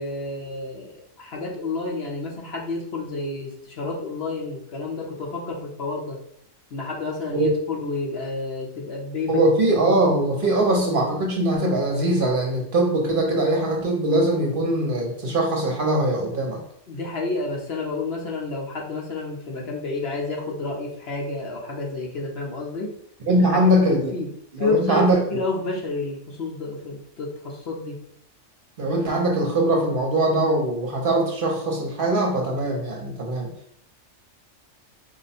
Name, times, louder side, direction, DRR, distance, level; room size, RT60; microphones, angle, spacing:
voice 1, 0.0-6.2 6.7-9.4 9.8-9.9 10.4-10.6 16.9-22.9 23.5-24.3 24.6-28.0, left 3 dB, 60° left, -1 dB, 1.1 m, -30 dB
voice 2, 9.3-16.6 23.3-24.1 24.5-25.2 28.8-33.5, right 1 dB, 50° right, 0 dB, 0.9 m, -21 dB
4.9 x 2.2 x 4.2 m, 0.69 s
omnidirectional pair, 1.2 m